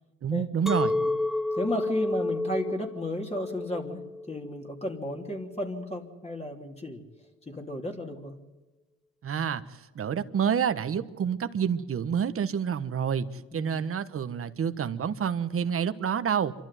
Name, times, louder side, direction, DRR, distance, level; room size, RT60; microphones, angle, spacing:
voice 1, 0.2-0.9 9.2-16.5, right 7 dB, 45° right, 11 dB, 1.3 m, -28 dB
Chink clink, 0.7-5.8, left 2 dB, ahead, 0.8 m, -31 dB
voice 2, 1.5-7.0 7.5-8.3 13.5-13.8, left 1 dB, 20° left, 1 dB, 3.2 m, -34 dB
27.0 x 12.5 x 9.3 m, 1.2 s
cardioid pair, 90°, 30 cm